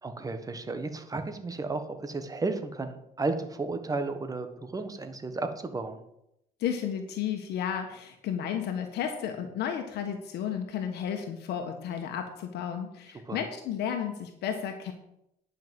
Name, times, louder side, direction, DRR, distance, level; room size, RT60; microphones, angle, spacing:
voice 1, 0.0-6.0 13.3-13.4, right 3 dB, 20° right, 8 dB, 1.4 m, -33 dB
voice 2, 6.6-14.9, left 8 dB, 75° left, 5 dB, 1.4 m, -33 dB
10.5 x 5.9 x 7.7 m, 0.81 s
cardioid pair, 110°, 17 cm